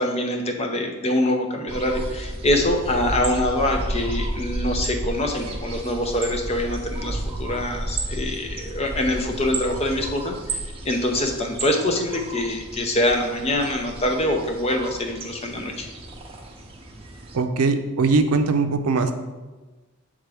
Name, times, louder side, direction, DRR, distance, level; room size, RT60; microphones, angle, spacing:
voice 1, 0.0-15.9, left 1 dB, 30° left, 3 dB, 0.6 m, -24 dB
sound 1, 1.7-17.4, right 1 dB, 25° right, 0.6 m, -32 dB
voice 2, 17.3-19.1, right 4 dB, 85° right, 8 dB, 0.5 m, -20 dB
7.8 x 3.6 x 3.4 m, 1.2 s
head